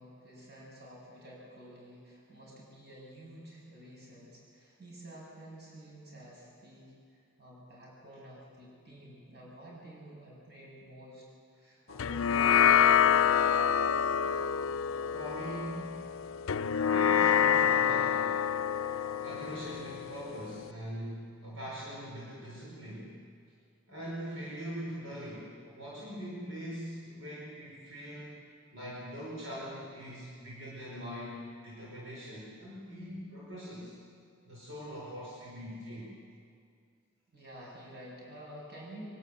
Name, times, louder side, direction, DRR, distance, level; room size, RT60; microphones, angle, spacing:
voice 1, 0.0-11.2 11.5-12.6 37.3-39.1, right 1 dB, 50° right, -4 dB, 7.3 m, -50 dB
sound 1, 12.0-20.7, left 8 dB, 80° left, 0.5 m, -27 dB
voice 2, 14.9-16.0 16.9-18.3 19.2-23.1 23.9-28.4 28.7-34.0 34.4-36.1, equal, 70° right, -6 dB, 5.1 m, -42 dB
23.5 x 12.5 x 9.4 m, 2.2 s
head